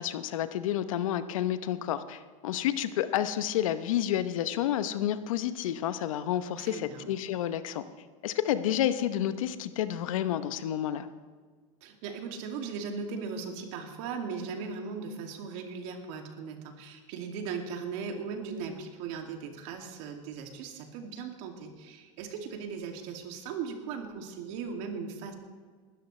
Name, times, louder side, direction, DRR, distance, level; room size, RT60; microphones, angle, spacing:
voice 1, 0.0-7.8 8.2-11.1, left 11 dB, 80° left, 12 dB, 0.9 m, -30 dB
voice 2, 6.6-7.1 11.8-25.3, right 5 dB, 70° right, 3 dB, 2.5 m, -38 dB
20.5 x 13.0 x 3.3 m, 1.5 s
hypercardioid pair, 95°, 17 cm